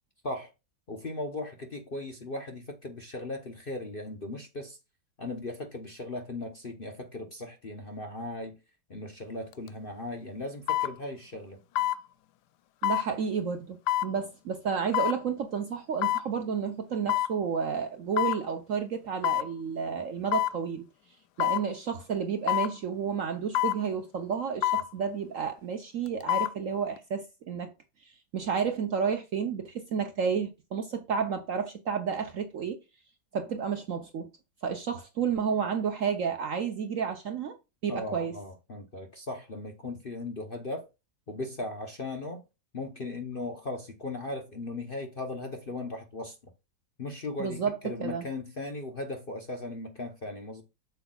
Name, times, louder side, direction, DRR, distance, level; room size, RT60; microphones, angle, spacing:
voice 1, 0.9-4.8 5.2-8.6 8.9-11.6 37.9-40.9 41.3-42.4 42.7-46.4 47.0-50.6, left 2 dB, 40° left, 0.8 m, -37 dB
sound 1, 9.5-9.7 10.7-10.9 11.8-12.0 12.8-13.1 13.9-14.1 14.9-15.2 16.0-16.3 17.1-17.4 18.2-18.4 19.2-19.5 20.3-20.6 21.4-21.7 22.5-22.7 23.5-23.8 24.6-24.9 26.1-26.5 27.0-27.1, left 13 dB, 75° left, 1.1 m, -26 dB
voice 2, 12.8-13.8 14.0-20.8 21.4-27.7 28.0-32.8 33.3-34.3 34.6-37.6 37.8-38.4 47.4-48.2, right 6 dB, 60° right, 0.9 m, -31 dB
7.9 x 6.8 x 2.3 m
omnidirectional pair, 2.0 m